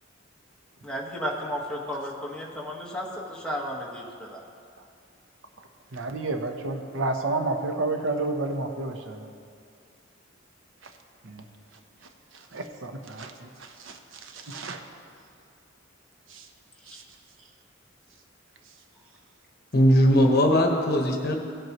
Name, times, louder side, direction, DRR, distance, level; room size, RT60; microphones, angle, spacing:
voice 1, 0.8-4.4, equal, 5° left, -3 dB, 1.4 m, -33 dB
voice 2, 5.9-9.3 10.8-10.9 11.2-11.4 12.3-14.8 16.3-16.5 16.9-17.0, right 2 dB, 80° right, 5 dB, 0.9 m, -31 dB
voice 3, 19.7-21.3, equal, 55° left, 2 dB, 1.2 m, -19 dB
16.5 x 7.8 x 3.0 m, 2.3 s
head